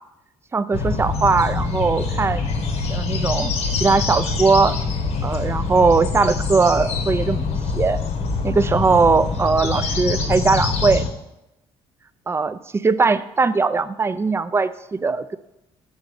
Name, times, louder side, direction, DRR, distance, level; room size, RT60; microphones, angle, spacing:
voice 1, 0.5-2.5 2.9-4.7 5.2-7.5 7.7-8.0 8.4-11.1 12.3-15.4, right 4 dB, 20° right, 14 dB, 0.4 m, -20 dB
sound 1, 0.7-11.1, left 4 dB, 70° left, 1.0 m, -24 dB
7.1 x 3.8 x 6.5 m, 0.90 s
supercardioid pair, 75°, 12 cm